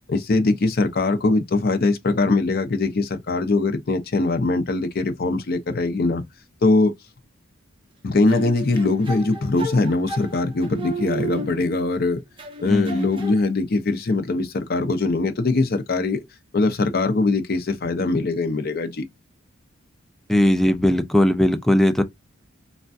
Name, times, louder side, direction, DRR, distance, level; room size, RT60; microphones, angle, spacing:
voice 1, 0.1-6.2 6.6-6.9 8.0-12.2 12.6-16.2 16.5-19.0, left 3 dB, 45° left, 0.6 m, -21 dB
sound 1, 8.3-12.0 12.4-13.4, right 2 dB, 25° right, 0.8 m, -33 dB
voice 2, 12.7-13.1 20.3-22.0, left 1 dB, ahead, 0.3 m, -19 dB
3.3 x 2.2 x 2.5 m
head